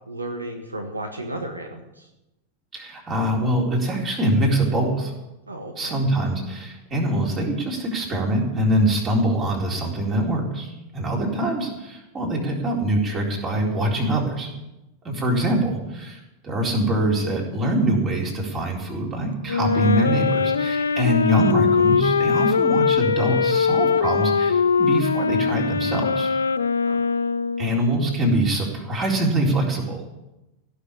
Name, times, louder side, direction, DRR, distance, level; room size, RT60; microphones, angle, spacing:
voice 1, 0.1-2.1 5.5-6.0 26.8-27.0 27.6-28.0, right 1 dB, 80° right, 4 dB, 1.4 m, -34 dB
voice 2, 2.7-5.1 5.8-14.5 15.0-26.3 27.6-30.0, right 1 dB, 25° right, 0 dB, 4.1 m, -24 dB
Wind instrument woodwind instrument, 19.5-27.8, left 5 dB, 70° left, 0.5 m, -21 dB
17.0 x 6.6 x 9.9 m, 0.96 s
figure-of-eight pair, 90°, 0 cm